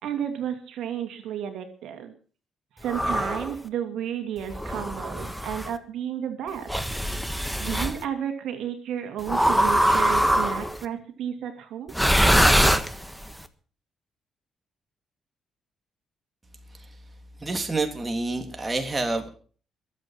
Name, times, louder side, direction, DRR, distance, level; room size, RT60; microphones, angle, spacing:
voice 1, 0.0-2.1 2.8-6.7 7.6-11.9, right 9 dB, 80° right, 5 dB, 2.5 m, -32 dB
sound 1, 2.9-3.5 4.5-5.7 6.7-8.0 9.3-10.8 11.9-13.3, equal, ahead, 1.4 m, -22 dB
voice 2, 17.4-19.3, right 2 dB, 20° right, 4 dB, 3.2 m, -28 dB
22.5 x 8.1 x 6.0 m, 0.41 s
cardioid pair, 90°, 0 cm